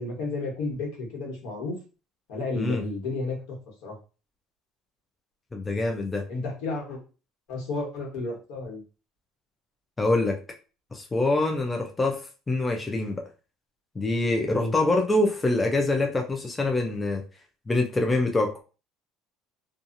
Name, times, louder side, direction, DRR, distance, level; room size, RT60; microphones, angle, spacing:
voice 1, 0.0-1.8 2.3-3.6 3.8-3.9 6.3-7.0 7.5-8.8 14.4-14.7, left 2 dB, 75° left, -1 dB, 1.3 m, -32 dB
voice 2, 5.5-6.2 10.0-10.4 10.9-12.2 12.5-13.2 14.0-17.2 17.7-18.6, left 2 dB, 15° left, 2 dB, 0.4 m, -25 dB
2.7 x 2.3 x 2.6 m, 0.34 s
cardioid pair, 130°, 0 cm